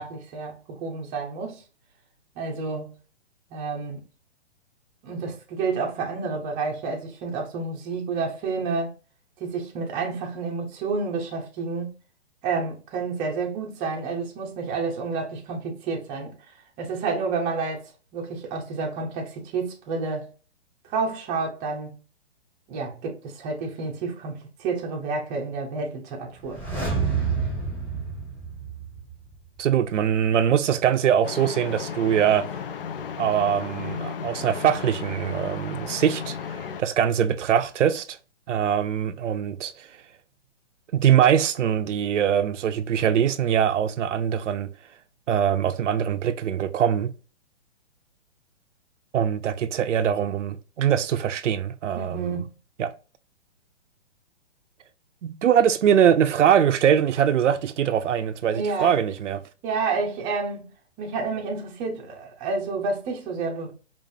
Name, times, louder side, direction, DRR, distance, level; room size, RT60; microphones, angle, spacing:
voice 1, 0.0-1.6 2.4-2.9 3.5-4.0 5.0-8.9 9.4-11.9 12.4-16.3 16.8-20.3 20.8-22.0 22.7-26.6 51.9-52.5 58.5-59.0 59.6-60.7 61.0-63.7, right 4 dB, 15° right, 0.6 m, -29 dB
sound 1, 26.4-29.3 29.6-29.7, right 5 dB, 5° left, 1.0 m, -28 dB
voice 2, 29.6-32.5 33.2-38.2 38.5-39.9 40.9-44.7 45.3-47.1 49.1-52.4 52.8-52.9 55.2-59.4, right 9 dB, 85° right, 0.6 m, -22 dB
sound 2, 31.2-36.8, left 7 dB, 50° left, 0.5 m, -34 dB
5.2 x 2.5 x 2.6 m
hypercardioid pair, 150°, 36 cm